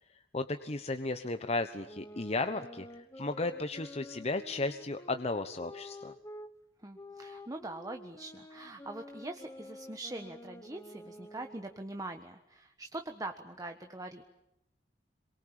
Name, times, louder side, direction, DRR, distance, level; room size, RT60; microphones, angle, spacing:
voice 1, 0.3-6.1, left 2 dB, 35° left, 8 dB, 1.1 m, -34 dB
sound 1, 1.8-6.5 6.9-11.9, left 1 dB, 20° left, 1.4 m, -49 dB
voice 2, 6.8-14.3, right 2 dB, 20° right, 5 dB, 1.5 m, -43 dB
27.5 x 23.5 x 8.9 m, 0.83 s
head